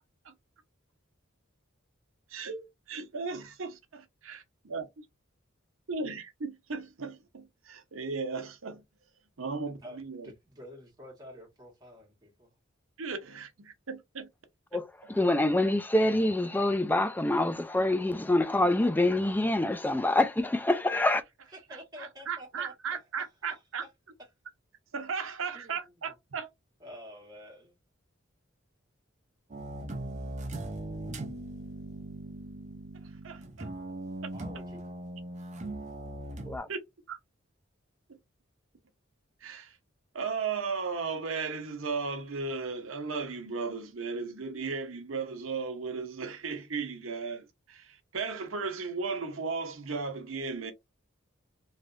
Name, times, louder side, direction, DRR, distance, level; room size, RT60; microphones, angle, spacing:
voice 1, 2.3-5.1 5.9-8.8 9.4-10.3 13.0-13.5 13.9-14.3 22.0-23.8 24.9-26.5 36.7-36.8 37.1-37.2 38.1-38.2 39.4-39.8 40.1-50.7, right 4 dB, 85° right, 0.8 m, -36 dB
voice 2, 9.7-10.0 10.2-12.5 21.5-23.9 24.2-24.3 25.5-26.1 26.8-27.7 34.3-34.8, equal, 20° right, 1.5 m, -49 dB
voice 3, 14.7-21.2 36.5-36.7, left 1 dB, 10° left, 0.3 m, -26 dB
sound 1, 29.5-36.6, right 1 dB, 35° right, 0.6 m, -39 dB
3.2 x 2.8 x 2.5 m
head